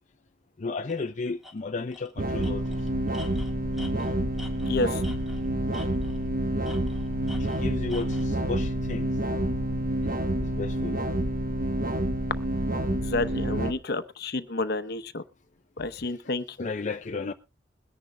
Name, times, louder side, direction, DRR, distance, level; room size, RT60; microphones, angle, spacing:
voice 1, 0.6-2.9 7.4-9.1 10.0-10.1 10.4-11.0 16.0-16.3 16.6-17.3, left 4 dB, 45° left, 0.5 m, -34 dB
Tools, 0.9-1.0 1.4-1.5 1.9-2.1 2.4-5.5 5.7-6.3 6.6-8.3, left 2 dB, ahead, 2.0 m, -47 dB
sound 1, 2.2-13.7, right 1 dB, 50° right, 1.0 m, -28 dB
voice 2, 4.7-5.0 12.9-15.2 15.8-16.7, left 2 dB, 65° left, 0.9 m, -30 dB
22.0 x 10.5 x 2.2 m
head